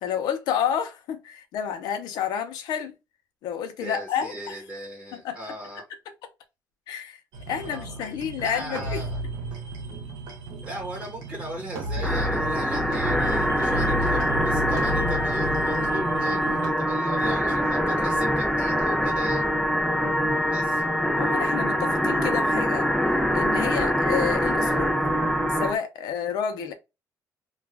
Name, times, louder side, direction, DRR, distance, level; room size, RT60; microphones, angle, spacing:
voice 1, 0.0-2.9 3.4-4.6 5.1-5.5 6.9-7.2 7.5-9.0 20.0-20.4 21.2-22.9 23.3-24.9 25.6-26.7, left 8 dB, 85° left, 0.7 m, -30 dB
voice 2, 3.8-5.8 7.6-8.0 8.4-9.2 10.6-19.4 20.5-20.8 23.8-24.2, right 1 dB, 15° right, 1.0 m, -38 dB
sound 1, 7.3-16.7, right 1 dB, 75° right, 0.9 m, -33 dB
sound 2, 12.0-25.8, equal, ahead, 0.6 m, -24 dB
2.4 x 2.3 x 3.2 m
cardioid pair, 130°, 7 cm